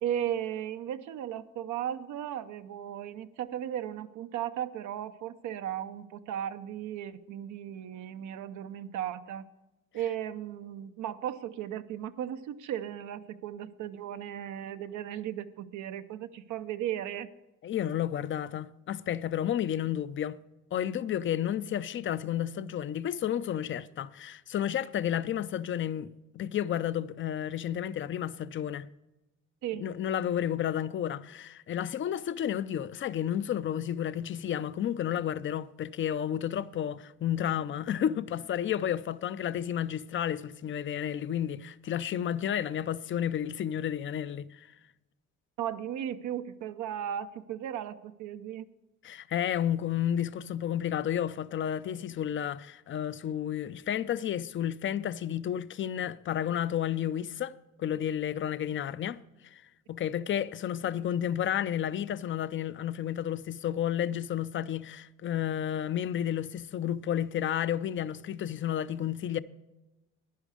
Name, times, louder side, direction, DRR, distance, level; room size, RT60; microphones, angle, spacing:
voice 1, 0.0-9.5 9.9-17.3 29.6-29.9 45.6-48.7, right 10 dB, 80° right, 0.7 m, -36 dB
voice 2, 17.6-20.4 20.7-28.9 29.8-44.7 49.0-59.6 59.9-69.4, left 10 dB, 40° left, 0.5 m, -31 dB
10.5 x 10.5 x 5.0 m
cardioid pair, 105°, 30 cm